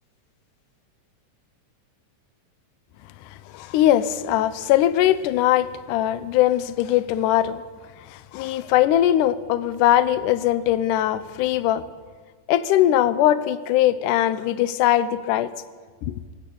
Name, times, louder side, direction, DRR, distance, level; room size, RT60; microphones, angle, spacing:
voice 1, 3.5-7.6 8.1-11.9 12.5-15.5 16.1-16.2, left 12 dB, 75° left, 13 dB, 2.3 m, -20 dB
20.5 x 16.5 x 8.6 m, 1.5 s
omnidirectional pair, 3.8 m